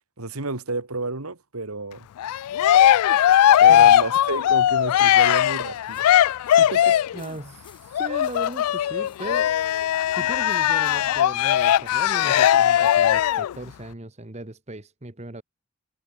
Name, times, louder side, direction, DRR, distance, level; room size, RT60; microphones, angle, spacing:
voice 1, 0.2-2.1 3.6-6.0 6.6-7.0, right 3 dB, 85° right, 2.4 m, -31 dB
Cheering, 2.2-7.2 7.9-13.5, left 11 dB, 85° left, 0.3 m, -19 dB
sound 1, 5.8-11.4, left 8 dB, 20° left, 7.5 m, -59 dB
voice 2, 7.1-9.5 10.1-15.4, right 1 dB, 30° right, 1.3 m, -37 dB
head